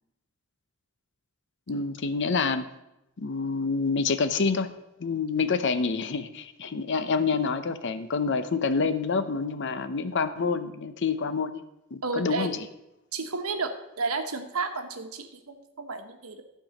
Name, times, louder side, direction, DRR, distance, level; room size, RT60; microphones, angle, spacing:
voice 1, 1.7-2.7 3.2-4.7 5.0-11.6 11.9-12.7, left 4 dB, 55° left, 11 dB, 0.6 m, -27 dB
voice 2, 12.0-12.5 13.1-16.4, right 4 dB, 85° right, 7 dB, 1.1 m, -32 dB
12.0 x 4.6 x 7.0 m, 0.90 s
head